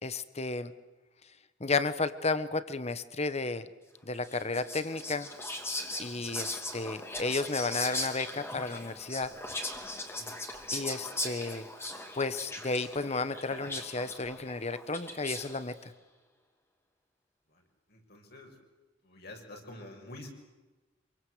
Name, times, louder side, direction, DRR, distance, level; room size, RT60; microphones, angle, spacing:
voice 1, 0.0-0.7 1.6-3.7 4.0-5.3 6.0-9.3 10.7-11.6 12.1-15.7, left 3 dB, 35° left, 13 dB, 1.3 m, -33 dB
Whispering, 4.2-15.7, left 2 dB, 15° left, 2.7 m, -39 dB
voice 2, 17.5-18.6 19.0-20.3, left 1 dB, 55° left, 2 dB, 6.6 m, -48 dB
27.0 x 24.0 x 8.0 m, 1.2 s
head